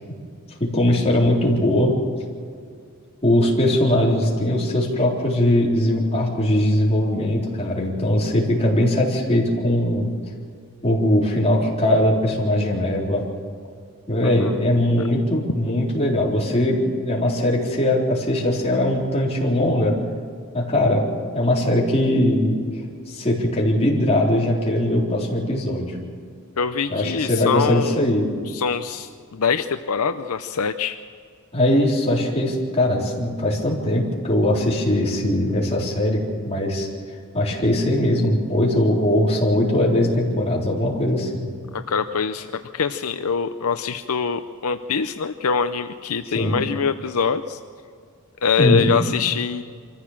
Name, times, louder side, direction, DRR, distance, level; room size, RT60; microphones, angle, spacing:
voice 1, 0.6-2.0 3.2-10.1 10.8-13.2 14.1-20.0 20.5-21.0 21.3-22.6 23.1-26.0 26.9-28.3 31.5-36.9 37.3-41.5 46.3-46.6 48.6-48.9, left 1 dB, 30° left, -3 dB, 3.9 m, -20 dB
voice 2, 14.2-14.6 26.6-28.0 28.5-31.0 41.7-42.5 42.7-47.6 48.4-49.6, left 6 dB, 75° left, 9 dB, 0.7 m, -24 dB
25.5 x 14.5 x 7.4 m, 2.2 s
head